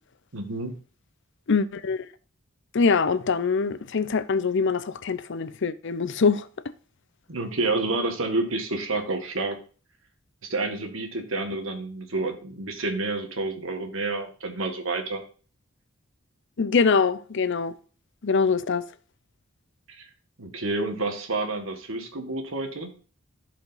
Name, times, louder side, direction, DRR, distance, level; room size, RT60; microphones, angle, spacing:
voice 1, 0.3-0.8 7.3-9.6 10.5-15.2 20.0-20.1 20.4-22.9, right 2 dB, 75° right, 1.6 m, -29 dB
voice 2, 1.5-2.1 2.7-6.5 16.6-17.7 18.2-18.8, left 5 dB, 60° left, 0.6 m, -23 dB
15.0 x 5.1 x 2.6 m
head